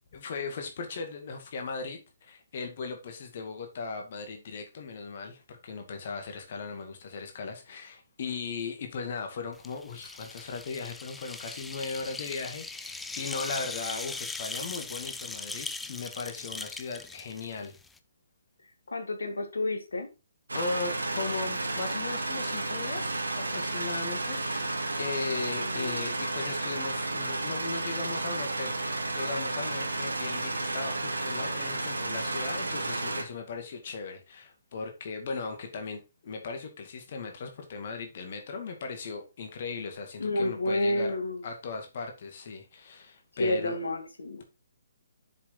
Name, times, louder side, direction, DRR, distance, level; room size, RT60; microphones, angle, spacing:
voice 1, 0.1-17.8 20.5-41.2 41.4-43.8, left 4 dB, 45° left, 2.3 m, -38 dB
sound 1, 9.6-18.0, left 3 dB, 5° left, 0.5 m, -40 dB
voice 2, 18.9-20.1 25.6-26.1 40.2-41.5 43.4-44.4, left 1 dB, 70° left, 2.4 m, -30 dB
sound 2, 20.5-33.2, right 2 dB, 75° right, 2.2 m, -32 dB
7.5 x 6.6 x 4.0 m
figure-of-eight pair, 135°, 0 cm